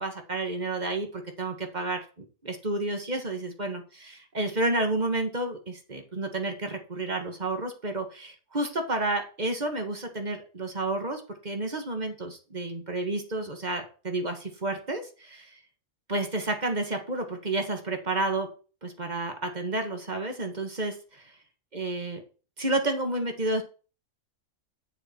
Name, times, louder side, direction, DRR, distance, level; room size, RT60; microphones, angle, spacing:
voice 1, 0.0-15.6 16.1-18.5 18.8-21.3 21.7-22.2 22.6-23.6, right 2 dB, 30° right, 5 dB, 1.5 m, -31 dB
8.7 x 6.7 x 4.3 m, 0.36 s
omnidirectional pair, 1.5 m